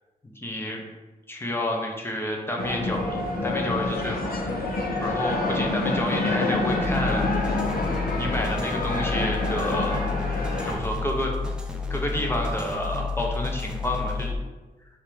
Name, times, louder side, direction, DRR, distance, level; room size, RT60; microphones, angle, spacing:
voice 1, 0.4-0.8 1.3-4.6 5.0-7.3 8.2-10.0 10.6-11.4 11.9-14.3, left 1 dB, 15° left, 0 dB, 0.9 m, -29 dB
sound 1, 2.6-10.7, left 2 dB, 75° left, 1.1 m, -27 dB
sound 2, 6.7-14.3, left 4 dB, 5° right, 0.5 m, -31 dB
5.5 x 3.5 x 4.9 m, 1.2 s
wide cardioid pair, 175°, 15 cm